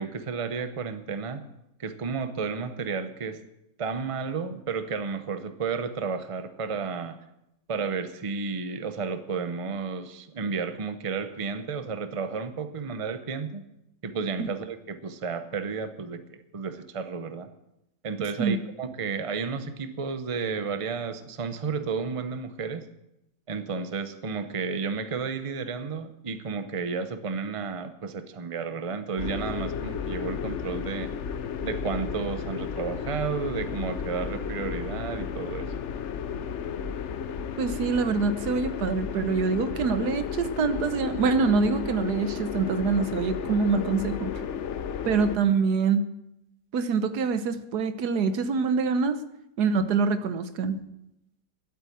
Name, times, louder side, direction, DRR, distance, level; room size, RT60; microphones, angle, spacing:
voice 1, 0.0-1.4 1.8-3.4 3.8-7.2 7.7-13.6 14.0-17.5 18.0-22.9 23.5-31.1 31.6-35.7, right 5 dB, 30° right, 10 dB, 0.7 m, -32 dB
sound 1, 29.2-45.4, left 7 dB, 60° left, 0.9 m, -33 dB
voice 2, 37.6-44.3 45.0-46.0 46.7-49.2 49.6-50.8, right 5 dB, 90° right, 10 dB, 1.5 m, -25 dB
12.0 x 8.5 x 8.6 m, 0.86 s
omnidirectional pair, 1.6 m